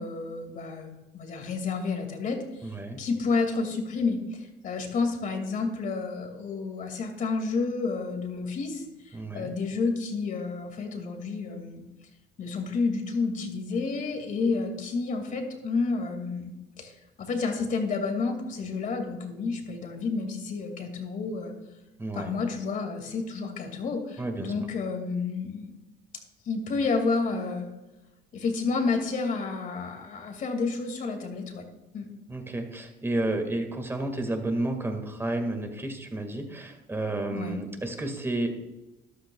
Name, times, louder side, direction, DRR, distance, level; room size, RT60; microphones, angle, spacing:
voice 1, 0.0-2.7 3.0-11.8 12.4-16.9 17.2-21.5 22.1-25.7 26.5-27.7 28.3-31.7 31.9-32.1 37.3-37.6, left 4 dB, 50° left, 5 dB, 2.2 m, -30 dB
voice 2, 2.6-3.0 9.1-9.5 22.0-22.3 24.2-24.5 32.3-38.5, right 2 dB, 15° right, 5 dB, 1.8 m, -31 dB
13.5 x 11.5 x 2.3 m, 1.0 s
cardioid pair, 110°, 17 cm